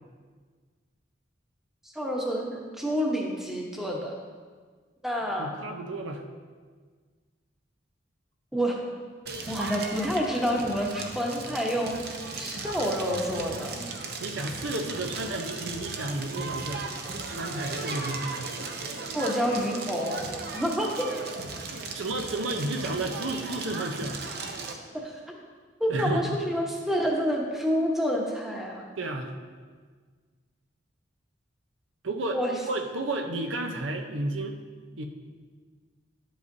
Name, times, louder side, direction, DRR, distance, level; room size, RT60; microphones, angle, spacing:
voice 1, 1.9-4.1 5.0-5.5 8.5-8.8 9.5-11.9 12.3-13.8 19.1-20.3 20.5-21.1 25.0-25.4 25.8-28.8 32.3-32.5, equal, ahead, -1 dB, 0.9 m, -28 dB
voice 2, 5.4-6.2 14.2-18.5 21.7-24.2 25.9-26.4 29.0-29.3 32.0-34.6 35.0-35.1, right 2 dB, 85° right, 4 dB, 0.8 m, -32 dB
Crackle, 9.3-24.7, right 3 dB, 55° right, 0.7 m, -36 dB
11.0 x 7.9 x 2.7 m, 1.5 s
head